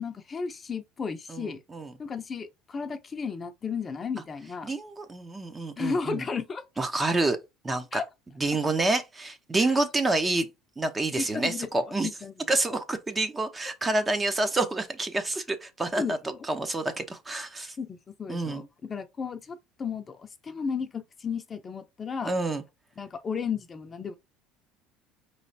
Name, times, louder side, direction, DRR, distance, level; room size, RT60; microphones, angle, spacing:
voice 1, 0.0-1.6 2.0-4.7 5.8-6.6 7.9-8.0 9.6-9.7 11.2-12.3 12.7-12.8 16.0-16.4 17.8-22.3 23.0-24.1, left 5 dB, 25° left, 0.6 m, -34 dB
voice 2, 1.3-1.9 4.6-6.3 6.8-7.4 7.6-8.0 8.4-10.5 10.8-12.1 12.5-16.2 16.4-17.8 18.3-18.6 22.2-22.6, right 2 dB, 15° right, 0.6 m, -28 dB
4.7 x 3.2 x 2.7 m
cardioid pair, 125°, 0 cm